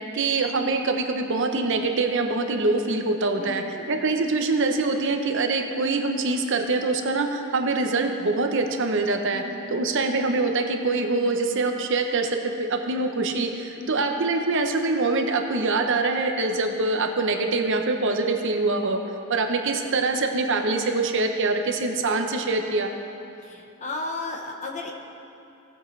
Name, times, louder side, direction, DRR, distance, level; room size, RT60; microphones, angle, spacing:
voice 1, 0.1-9.4 9.7-19.0 19.3-22.9, right 3 dB, 55° right, 5 dB, 0.8 m, -24 dB
voice 2, 3.4-3.9 9.3-9.9 13.8-14.1 23.4-24.9, left 2 dB, 35° left, 2 dB, 0.9 m, -35 dB
17.5 x 7.7 x 3.2 m, 2.7 s
head